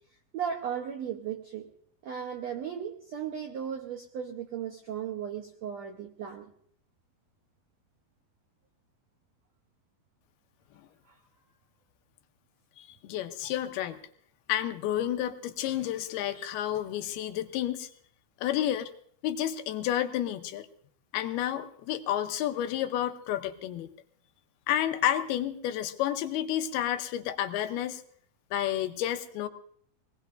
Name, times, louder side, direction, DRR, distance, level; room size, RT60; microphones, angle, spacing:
voice 1, 0.3-1.7 2.0-6.5 13.4-13.5, right 8 dB, 90° right, 3 dB, 1.5 m, -36 dB
voice 2, 12.8-14.0 14.5-17.9 18.4-18.9 19.2-20.7 21.1-23.9 24.7-28.0 28.5-29.5, left 11 dB, 85° left, 8 dB, 2.8 m, -30 dB
24.0 x 19.0 x 2.6 m, 0.62 s
omnidirectional pair, 4.4 m